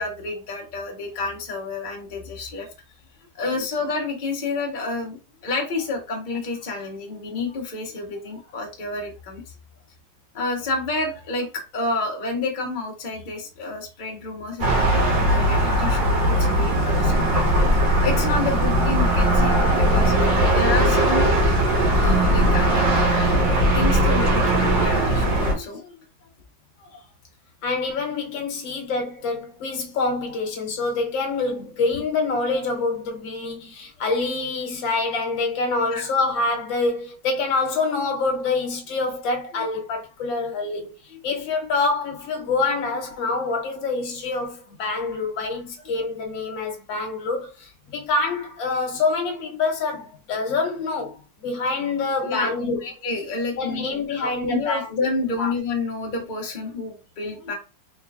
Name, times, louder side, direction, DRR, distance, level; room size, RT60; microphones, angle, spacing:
voice 1, 0.0-2.7 3.3-5.2 5.4-9.4 10.3-17.4 18.0-21.3 22.0-23.4 23.7-26.0 26.8-27.0 35.9-36.1 39.5-39.6 52.2-57.6, left 3 dB, 35° left, 0.9 m, -29 dB
sound 1, 14.6-25.5, right 1 dB, 75° right, 2.0 m, -19 dB
voice 2, 16.2-16.5 20.1-20.2 27.6-40.9 41.2-52.8 53.6-54.9 55.4-55.5, left 3 dB, 80° left, 1.6 m, -26 dB
4.2 x 3.6 x 2.4 m
omnidirectional pair, 2.0 m